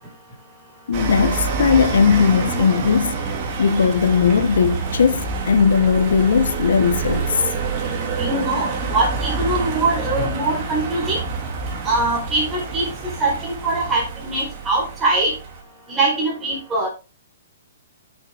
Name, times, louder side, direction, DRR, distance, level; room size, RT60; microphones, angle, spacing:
voice 1, 0.9-3.2 3.6-7.3, left 6 dB, 75° left, 1.5 m, -18 dB
sound 1, 0.9-15.6, right 4 dB, 25° right, 2.7 m, -27 dB
voice 2, 8.2-11.2 11.8-12.9 13.2-15.3 15.9-16.9, right 2 dB, 10° right, 4.7 m, -22 dB
9.3 x 8.9 x 3.6 m
hypercardioid pair, 175°, 0 cm